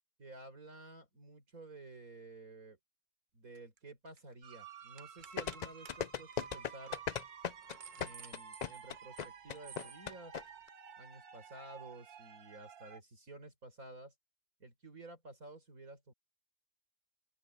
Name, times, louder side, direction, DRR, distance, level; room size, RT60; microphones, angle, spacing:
voice 1, 0.2-2.8 3.3-7.0 8.0-10.3 11.0-14.1 14.6-16.1, right 2 dB, 65° right, 5.1 m, -52 dB
sound 1, 3.5-3.8 4.1-4.3 5.0-5.6 5.9-6.0 6.3-6.5 6.9-7.0 7.4-9.3 9.6-10.0, right 7 dB, 50° right, 0.6 m, -54 dB
sound 2, 4.4-13.0, right 7 dB, 85° right, 1.9 m, -53 dB
sound 3, 5.4-10.4 10.7-10.8, left 8 dB, 85° left, 0.3 m, -37 dB
open air
omnidirectional pair, 1.6 m